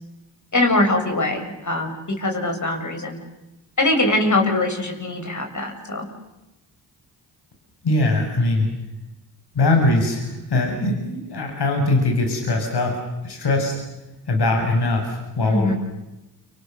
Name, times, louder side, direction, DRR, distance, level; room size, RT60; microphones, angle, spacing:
voice 1, 0.5-3.2 3.8-6.1 15.4-15.7, left 2 dB, 40° left, 3 dB, 7.5 m, -22 dB
voice 2, 7.8-8.7 9.5-13.7 14.3-15.7, left 2 dB, 60° left, 2 dB, 7.2 m, -21 dB
29.0 x 27.0 x 6.8 m, 0.96 s
supercardioid pair, 55°, 44 cm